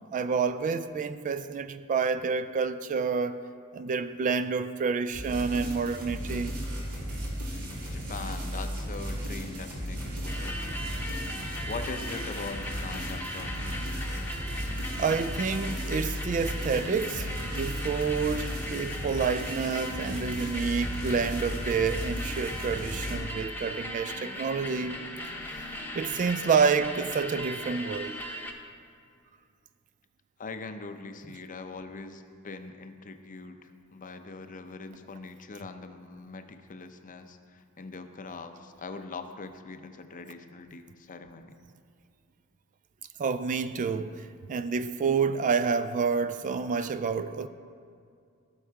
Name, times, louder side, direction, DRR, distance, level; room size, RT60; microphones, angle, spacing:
voice 1, 0.1-3.4 3.7-6.5 15.0-25.0 25.9-28.2 43.2-47.5, right 5 dB, 35° right, 0.3 m, -28 dB
sound 1, 5.1-23.1, equal, 85° right, 2.4 m, -35 dB
voice 2, 7.9-14.0 18.4-18.5 20.3-20.4 30.4-41.6, left 3 dB, 35° left, 0.6 m, -42 dB
sound 2, 10.3-28.5, left 1 dB, 10° left, 0.9 m, -38 dB
15.0 x 6.4 x 4.6 m
head